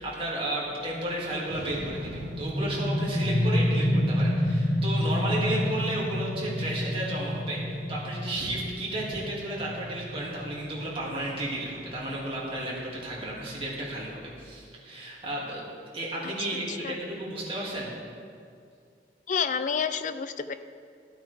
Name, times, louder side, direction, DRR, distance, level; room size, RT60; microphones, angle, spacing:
voice 1, 0.0-15.6 15.9-17.9, right 1 dB, 30° right, -5 dB, 2.3 m, -33 dB
sound 1, 1.5-12.9, equal, 10° left, 1.1 m, -29 dB
sound 2, 1.5-3.7, right 1 dB, 65° right, 0.8 m, -45 dB
voice 2, 16.2-17.0 19.3-20.5, left 6 dB, 45° left, 11 dB, 0.4 m, -30 dB
13.5 x 9.0 x 3.4 m, 2.3 s
head